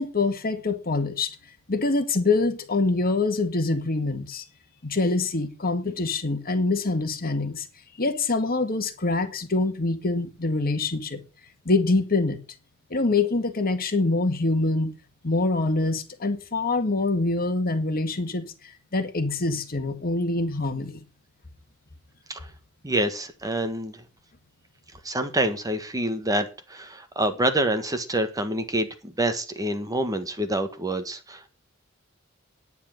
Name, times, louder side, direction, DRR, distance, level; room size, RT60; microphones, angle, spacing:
voice 1, 0.0-1.4 1.7-4.4 4.8-7.7 8.0-11.2 11.7-12.4 12.9-15.0 15.2-18.5 18.9-21.0, left 3 dB, 45° left, 1.8 m, -25 dB
voice 2, 22.8-24.0 25.0-31.5, right 1 dB, 15° right, 1.5 m, -27 dB
10.0 x 9.8 x 6.5 m
head